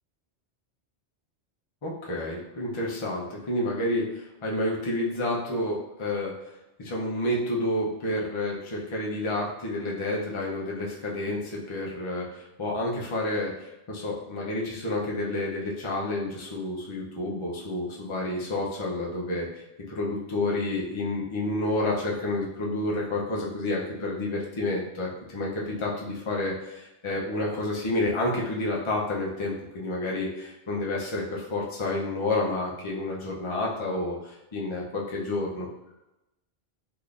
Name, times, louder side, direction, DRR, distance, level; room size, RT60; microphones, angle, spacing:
voice 1, 1.8-6.3 6.8-35.7, left 2 dB, 35° left, -3 dB, 0.6 m, -30 dB
3.6 x 2.9 x 2.5 m, 0.93 s
omnidirectional pair, 1.1 m